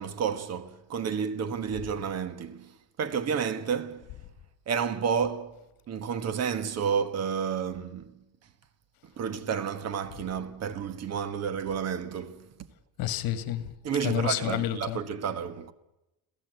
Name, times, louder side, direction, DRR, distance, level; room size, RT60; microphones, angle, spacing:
voice 1, 0.0-4.1 4.7-8.1 9.0-12.5 13.8-15.7, right 7 dB, 40° right, 1.4 m, -31 dB
voice 2, 13.0-13.7 14.0-15.0, left 12 dB, 60° left, 2.0 m, -29 dB
27.5 x 16.0 x 8.1 m
cardioid pair, 150°, 39 cm